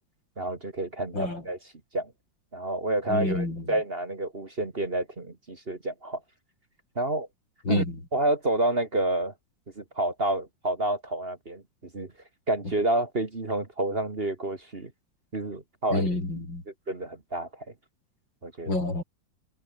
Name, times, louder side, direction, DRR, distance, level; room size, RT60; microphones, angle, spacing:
voice 1, 0.4-1.6 1.9-2.1 2.5-6.2 7.0-7.3 7.7-7.8 8.1-9.3 9.8-11.6 11.9-12.1 12.5-14.9 15.3-16.1 16.9-17.7 18.4-18.7, right 1 dB, 30° right, 2.3 m, -29 dB
voice 2, 3.1-3.6 7.7-7.9 15.9-16.6 18.7-19.0, left 2 dB, 75° left, 7.8 m, -28 dB
omnidirectional pair, 2.0 m